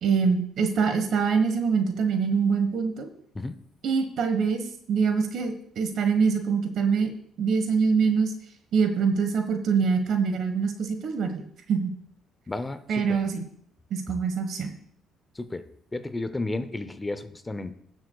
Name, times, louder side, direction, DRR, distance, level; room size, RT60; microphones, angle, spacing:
voice 1, 0.0-3.1 3.8-4.6 4.9-7.1 7.4-8.3 8.7-11.9 12.9-13.4 13.9-14.7, right 5 dB, 65° right, 7 dB, 1.4 m, -24 dB
voice 2, 12.5-12.8 15.4-17.7, left 2 dB, 20° left, 12 dB, 0.7 m, -32 dB
20.5 x 7.0 x 2.4 m, 0.65 s
supercardioid pair, 75°, 0 cm